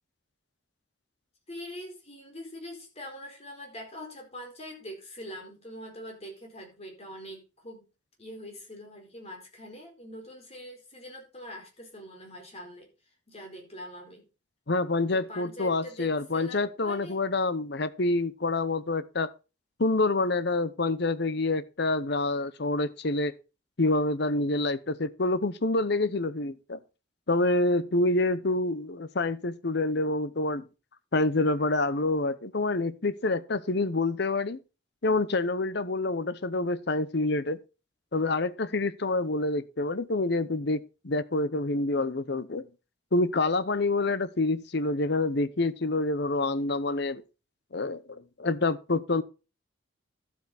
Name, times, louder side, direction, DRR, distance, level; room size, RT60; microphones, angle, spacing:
voice 1, 1.5-7.9 8.2-12.9 13.3-14.3 15.1-17.2, equal, 30° left, 4.6 m, -43 dB
voice 2, 14.7-19.3 19.8-23.4 23.8-26.8 27.3-30.7 31.1-34.6 35.0-37.6 38.1-42.7 43.1-47.2 47.7-49.2, left 2 dB, 55° left, 0.9 m, -27 dB
12.0 x 8.3 x 4.1 m
head